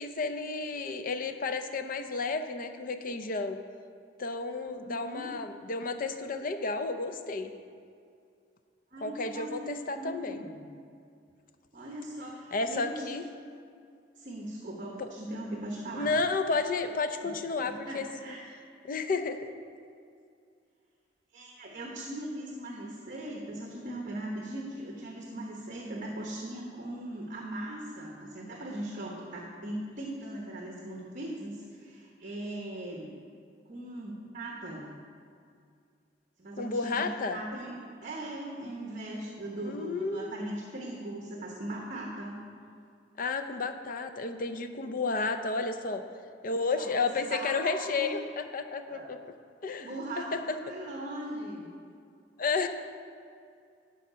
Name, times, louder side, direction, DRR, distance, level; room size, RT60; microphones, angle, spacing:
voice 1, 0.0-3.6 4.2-7.5 9.0-10.4 12.5-13.2 15.0-15.1 15.9-18.3 18.8-19.5 36.6-37.4 39.6-40.3 43.2-46.0 46.4-49.2 49.6-50.4 52.4-52.7, left 3 dB, 50° left, 8 dB, 0.6 m, -32 dB
voice 2, 4.7-5.3 8.9-10.6 11.7-13.2 14.2-16.2 17.2-17.3 17.6-18.4 21.3-33.1 33.7-34.9 36.4-37.7 38.0-42.4 46.8-48.2 48.9-49.1 49.8-51.7, right 1 dB, 45° right, -1 dB, 1.0 m, -39 dB
11.5 x 4.9 x 5.6 m, 2.3 s
head